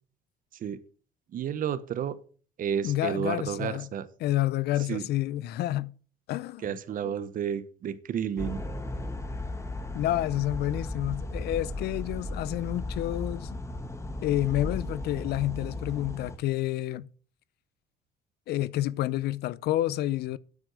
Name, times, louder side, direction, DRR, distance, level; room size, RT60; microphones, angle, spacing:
voice 1, 1.3-2.2 2.6-4.1 4.9-5.1 6.6-8.6, right 8 dB, 55° right, 1.1 m, -31 dB
voice 2, 2.8-3.9 4.2-5.9 6.3-6.8 7.0-7.1 9.9-13.6 14.2-17.1 18.5-20.4, left 14 dB, 75° left, 0.6 m, -29 dB
sound 1, 8.4-16.4, left 2 dB, 15° left, 1.8 m, -36 dB
9.5 x 7.8 x 6.4 m
cardioid pair, 110°, 17 cm